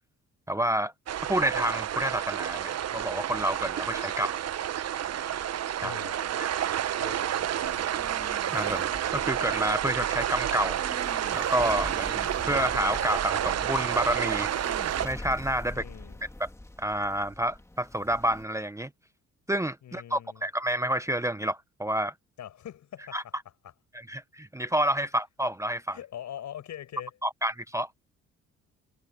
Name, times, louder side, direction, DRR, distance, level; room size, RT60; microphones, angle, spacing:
voice 1, 0.5-0.9 1.2-4.4 5.8-5.9 6.4-6.5 8.5-10.8 11.3-12.2 12.5-14.5 15.0-15.8 16.4-16.5 16.8-18.9 19.5-22.1 23.1-23.2 23.9-26.0 27.2-27.9, right 1 dB, 10° right, 0.9 m, -29 dB
sound 1, 1.1-15.1, right 10 dB, 55° right, 1.0 m, -30 dB
voice 2, 5.8-6.2 7.0-7.9 15.7-16.2 19.8-20.4 22.4-23.3 25.9-27.1, left 11 dB, 70° left, 6.0 m, -42 dB
sound 2, 7.2-18.4, left 1 dB, 10° left, 2.1 m, -44 dB
cardioid pair, 90°, 30 cm